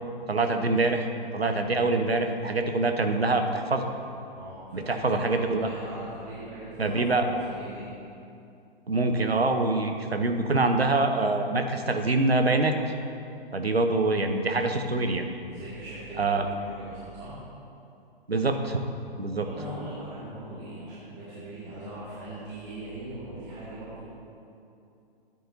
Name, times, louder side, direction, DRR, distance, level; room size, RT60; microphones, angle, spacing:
voice 1, 0.3-1.1 1.3-3.9 4.7-5.7 6.8-7.2 8.9-12.7 13.5-15.2 16.2-16.4 18.3-18.8 19.2-19.5, right 2 dB, 90° right, 5 dB, 0.9 m, -25 dB
voice 2, 4.3-7.9 15.4-17.4 19.4-24.1, right 1 dB, 25° right, -10 dB, 2.2 m, -40 dB
13.5 x 9.5 x 2.8 m, 2.6 s
figure-of-eight pair, 120°, 30 cm